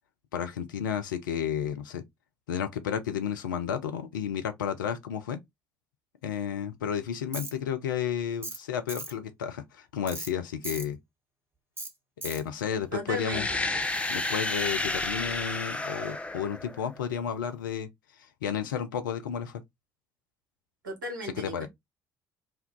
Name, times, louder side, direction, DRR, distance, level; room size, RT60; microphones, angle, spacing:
voice 1, 0.3-2.0 2.5-5.4 6.2-11.0 12.2-13.5 14.1-17.9 18.4-19.6 21.4-21.7, left 8 dB, 75° left, 0.5 m, -32 dB
Tools, 7.3-7.5 8.4-8.6 8.9-9.1 10.1-10.3 10.6-10.9 11.8-11.9 12.2-12.4, right 2 dB, 20° right, 1.2 m, -37 dB
voice 2, 12.9-13.8 20.8-21.7, equal, 80° right, 1.0 m, -36 dB
sound 1, 13.1-17.0, left 2 dB, 10° left, 0.5 m, -31 dB
2.7 x 2.3 x 3.5 m
figure-of-eight pair, 50°, 11 cm